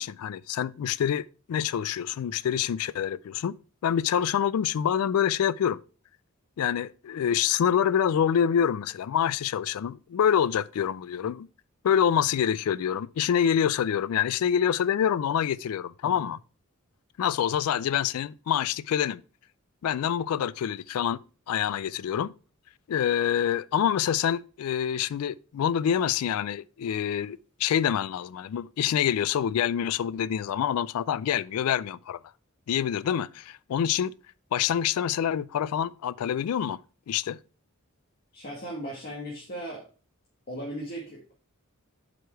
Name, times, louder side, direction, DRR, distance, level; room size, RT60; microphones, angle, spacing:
voice 1, 0.0-3.6 3.8-5.8 6.6-11.5 11.8-16.4 17.2-19.2 19.8-21.2 21.5-22.3 22.9-32.2 32.7-34.1 34.5-36.8 37.1-37.4, left 9 dB, 85° left, 0.3 m, -26 dB
voice 2, 38.3-39.8 40.5-41.3, right 1 dB, 45° left, 1.8 m, -37 dB
7.9 x 5.0 x 4.5 m
head